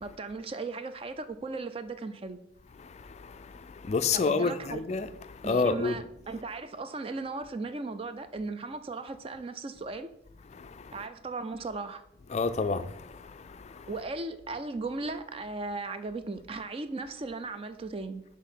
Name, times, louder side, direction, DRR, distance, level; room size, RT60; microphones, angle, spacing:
voice 1, 0.0-2.4 4.1-4.8 5.4-10.1 10.9-12.0 13.9-18.2, right 3 dB, 30° right, 0.4 m, -37 dB
voice 2, 2.8-6.0 10.5-11.1 12.3-13.9, left 4 dB, 35° left, 0.3 m, -31 dB
6.3 x 3.6 x 5.7 m
head